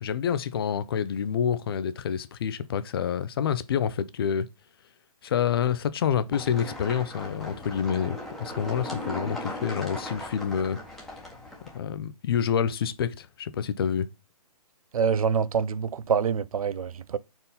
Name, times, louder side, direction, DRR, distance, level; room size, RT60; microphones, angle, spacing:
voice 1, 0.0-4.5 5.2-10.8 11.7-14.1, left 8 dB, 40° left, 0.5 m, -28 dB
sound 1, 6.3-11.8, left 1 dB, ahead, 1.2 m, -38 dB
voice 2, 14.9-17.2, right 6 dB, 65° right, 0.5 m, -26 dB
4.4 x 3.9 x 5.4 m
hypercardioid pair, 150°, 19 cm